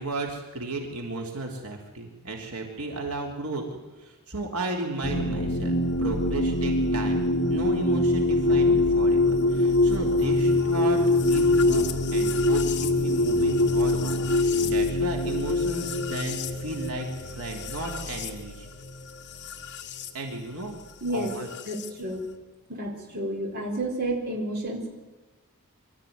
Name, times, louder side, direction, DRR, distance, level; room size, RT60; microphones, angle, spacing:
voice 1, 0.0-3.6 4.0-11.9 12.1-18.7 20.1-20.8 21.1-21.5, right 2 dB, 90° right, 1 dB, 3.5 m, -34 dB
sound 1, 5.0-20.1 21.3-21.9, left 2 dB, 50° left, 1.5 m, -24 dB
voice 2, 21.0-21.3 21.7-22.2 22.7-24.9, right 1 dB, 45° right, 1 dB, 4.1 m, -30 dB
24.5 x 13.5 x 9.5 m, 1.2 s
head